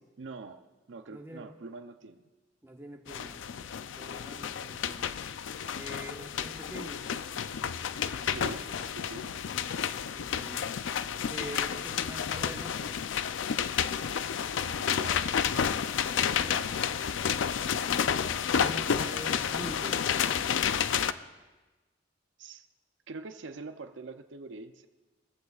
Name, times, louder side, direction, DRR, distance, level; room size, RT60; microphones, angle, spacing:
voice 1, 0.2-2.2 8.2-9.4 14.5-15.2 22.4-22.7 23.1-24.9, right 3 dB, 75° right, 8 dB, 0.6 m, -44 dB
voice 2, 1.1-1.5 2.6-3.4 3.9-5.1 5.7-7.1 10.0-10.7 11.3-12.9 16.2-18.0 18.6-20.2, right 1 dB, 15° right, 2 dB, 1.1 m, -45 dB
sound 1, 3.1-21.1, left 8 dB, 90° left, 0.4 m, -31 dB
21.5 x 14.5 x 2.4 m, 1.2 s
head